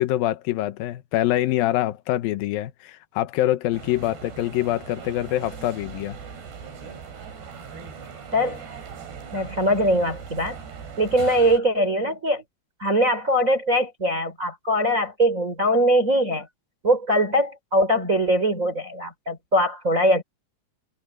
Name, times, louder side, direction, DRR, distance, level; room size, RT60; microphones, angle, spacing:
voice 1, 0.0-6.2, left 14 dB, 75° left, 2.4 m, -25 dB
sound 1, 3.7-11.6, right 6 dB, 75° right, 6.4 m, -40 dB
voice 2, 8.3-8.6 9.3-10.6 11.0-12.4 12.8-16.5 16.8-20.2, equal, 20° right, 3.9 m, -21 dB
omnidirectional pair, 4.8 m